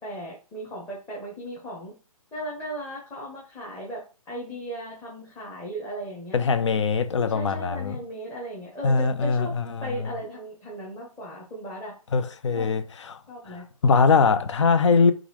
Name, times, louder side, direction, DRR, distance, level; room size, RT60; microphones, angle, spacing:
voice 1, 0.0-1.9 2.3-6.4 7.3-9.5 9.8-11.9 12.5-12.7 13.3-13.7, equal, 10° left, 1.0 m, -36 dB
voice 2, 6.3-8.0 8.8-10.1 12.1-13.2 13.8-15.1, left 4 dB, 50° left, 0.6 m, -22 dB
3.9 x 3.6 x 3.0 m
hypercardioid pair, 150°, 19 cm